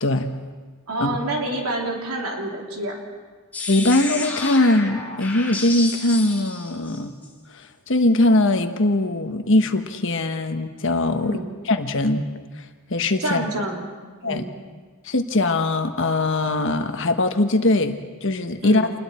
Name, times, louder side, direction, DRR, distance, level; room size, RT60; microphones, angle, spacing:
voice 1, 0.0-0.3 1.0-1.2 3.7-7.1 7.5-11.4 11.6-12.3 12.9-13.5 14.2-14.4 15.0-18.9, left 2 dB, 60° left, 6 dB, 1.4 m, -21 dB
voice 2, 0.9-3.1 11.2-11.5 13.2-13.9 14.2-14.6 18.6-18.9, right 1 dB, 85° right, 0 dB, 3.4 m, -28 dB
sound 1, 3.5-7.3, left 3 dB, 5° left, 3.3 m, -31 dB
28.0 x 21.0 x 4.4 m, 1.4 s
head